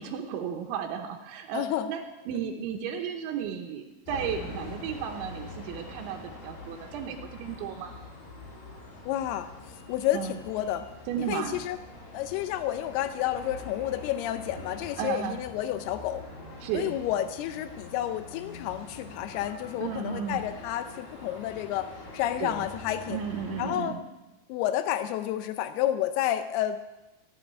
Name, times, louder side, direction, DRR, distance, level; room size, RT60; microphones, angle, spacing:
voice 1, 0.0-7.9 10.1-10.4 11.1-11.6 15.0-15.4 16.6-17.0 19.8-20.4 22.4-22.7 23.1-24.0, right 8 dB, 80° right, 4 dB, 3.2 m, -34 dB
voice 2, 1.5-1.9 9.1-9.5 9.9-10.9 11.3-11.8 12.1-16.2 16.7-23.2 23.6-24.0 24.5-26.8, left 12 dB, 90° left, 10 dB, 2.2 m, -30 dB
sound 1, 4.0-23.7, left 2 dB, 50° left, 6.0 m, -44 dB
16.0 x 7.1 x 9.2 m, 1.1 s
omnidirectional pair, 5.4 m